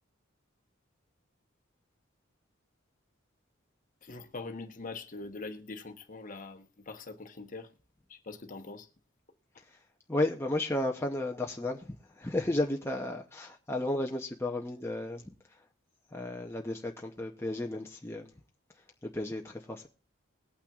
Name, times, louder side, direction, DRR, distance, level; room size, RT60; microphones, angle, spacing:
voice 1, 4.0-7.7 8.1-8.9, left 3 dB, 40° left, 1.0 m, -43 dB
voice 2, 10.1-15.3 16.1-18.3 19.0-19.9, left 2 dB, 10° left, 0.7 m, -33 dB
21.0 x 8.8 x 2.4 m
head